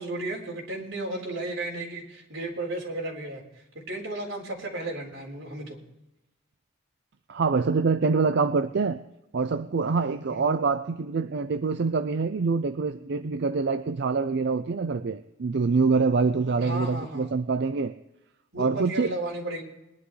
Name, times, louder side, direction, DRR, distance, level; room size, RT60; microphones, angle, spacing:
voice 1, 0.0-5.8 10.3-10.6 16.6-17.3 18.5-19.6, right 2 dB, 85° right, 4.1 m, -34 dB
voice 2, 7.3-9.0 9.3-17.9 18.6-19.1, right 4 dB, 60° right, 0.5 m, -25 dB
21.5 x 11.5 x 3.2 m
head